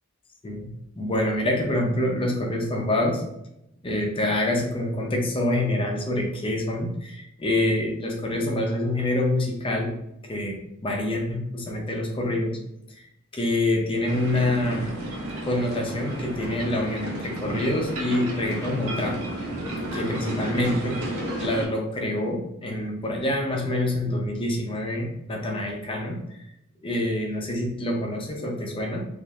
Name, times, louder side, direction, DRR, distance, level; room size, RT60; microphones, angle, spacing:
voice 1, 0.4-3.2 3.8-10.0 10.2-12.6 13.0-13.1 13.3-15.0 15.4-19.2 19.9-21.0 21.4-26.4 26.8-29.1, left 1 dB, 25° left, 0 dB, 0.5 m, -26 dB
sound 1, 14.0-21.7, right 1 dB, 80° right, 0.7 m, -32 dB
3.0 x 2.5 x 2.3 m, 0.81 s
head